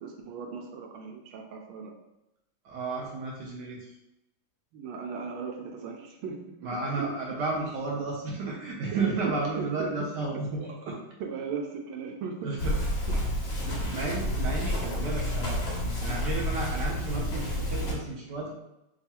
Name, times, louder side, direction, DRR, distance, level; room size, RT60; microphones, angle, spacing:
voice 1, 0.0-1.9 4.7-6.5 6.9-7.1 9.2-10.1 11.2-12.5, right 5 dB, 85° right, 2 dB, 1.5 m, -37 dB
voice 2, 2.6-3.8 6.6-10.9 12.4-12.7 13.6-15.6 16.0-18.5, right 3 dB, 65° right, -2 dB, 1.2 m, -32 dB
sound 1, 12.6-17.9, equal, 65° left, 0.6 m, -30 dB
3.5 x 2.4 x 4.2 m, 0.90 s
omnidirectional pair, 2.3 m